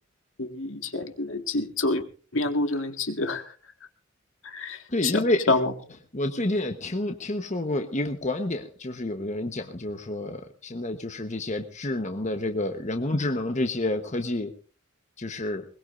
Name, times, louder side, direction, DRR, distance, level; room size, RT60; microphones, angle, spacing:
voice 1, 0.4-2.0 2.3-3.5 4.4-5.7, left 3 dB, 70° left, 6 dB, 1.9 m, -27 dB
voice 2, 4.9-5.4 6.1-14.5 15.2-15.6, left 1 dB, 35° left, 6 dB, 1.1 m, -29 dB
21.5 x 20.5 x 2.6 m, 0.38 s
head